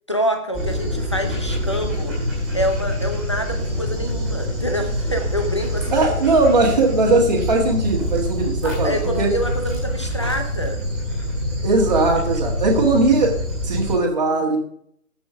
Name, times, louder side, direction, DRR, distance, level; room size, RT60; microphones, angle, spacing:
voice 1, 0.1-2.2 2.5-6.2 8.6-10.8, equal, 20° left, 4 dB, 0.7 m, -26 dB
Dog, 0.5-13.9, equal, ahead, 2.6 m, -25 dB
voice 2, 5.9-9.3 11.6-13.4 13.6-14.6, right 2 dB, 30° right, -1 dB, 1.6 m, -19 dB
14.0 x 6.1 x 4.9 m, 0.67 s
hypercardioid pair, 170°, 44 cm